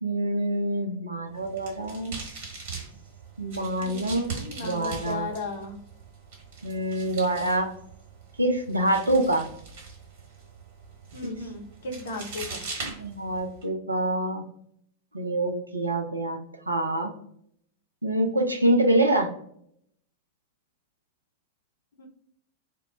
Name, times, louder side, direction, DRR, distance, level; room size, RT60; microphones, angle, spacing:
voice 1, 0.0-2.1 3.4-4.4 4.6-5.3 6.6-7.7 8.4-9.5 11.2-11.4 12.8-14.4 15.1-16.4 16.7-17.1 18.0-19.3, right 1 dB, 80° right, 4 dB, 0.4 m, -26 dB
sound 1, 1.3-13.6, right 4 dB, 55° right, 1.2 m, -41 dB
voice 2, 3.8-5.8 11.1-12.7 18.7-19.3 22.0-22.1, left 3 dB, 60° left, 3 dB, 0.6 m, -36 dB
2.1 x 2.0 x 3.5 m, 0.68 s
figure-of-eight pair, 90°, 0 cm